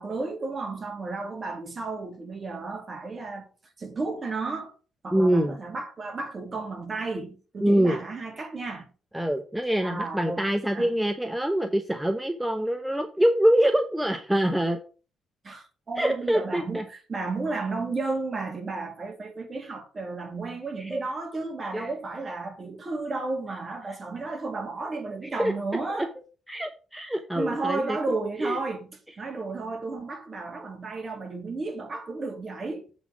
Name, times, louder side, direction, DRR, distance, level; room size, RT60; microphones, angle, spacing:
voice 1, 0.0-3.5 3.8-4.7 5.0-8.9 9.8-10.5 10.7-10.9 15.4-26.1 27.4-32.9, right 3 dB, 35° right, 2.2 m, -33 dB
voice 2, 5.1-5.6 7.6-8.0 9.1-14.8 16.0-16.8 20.8-21.0 21.7-21.9 25.4-25.5 25.9-26.1 26.5-28.0 28.4-28.6, equal, 5° right, 0.8 m, -24 dB
7.7 x 4.1 x 5.8 m
cardioid pair, 90°, 0 cm